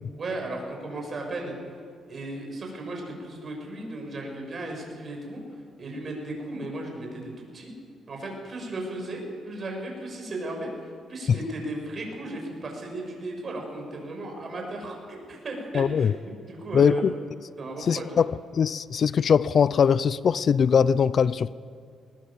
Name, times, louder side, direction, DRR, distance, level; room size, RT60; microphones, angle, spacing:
voice 1, 0.2-1.6 2.1-7.7 8.1-17.0 17.6-18.2, right 1 dB, 40° right, 7.2 m, -35 dB
voice 2, 15.7-16.1 16.7-17.1 17.8-21.5, left 7 dB, 55° left, 0.5 m, -21 dB
21.5 x 20.0 x 7.4 m
cardioid pair, 85°, 0 cm